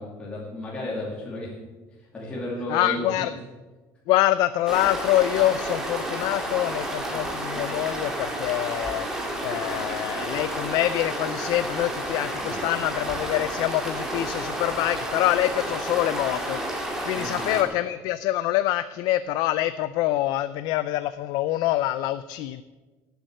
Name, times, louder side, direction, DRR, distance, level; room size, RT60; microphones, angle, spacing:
voice 1, 0.0-1.5 2.1-3.2 12.4-12.7 17.1-17.5, left 1 dB, 15° left, -5 dB, 2.5 m, -33 dB
voice 2, 2.7-3.3 4.1-9.1 9.4-22.6, left 14 dB, 60° left, 13 dB, 0.5 m, -25 dB
sound 1, 4.7-17.6, right 1 dB, 5° right, 2.0 m, -31 dB
17.5 x 8.0 x 6.6 m, 1.2 s
cardioid pair, 175°, 8 cm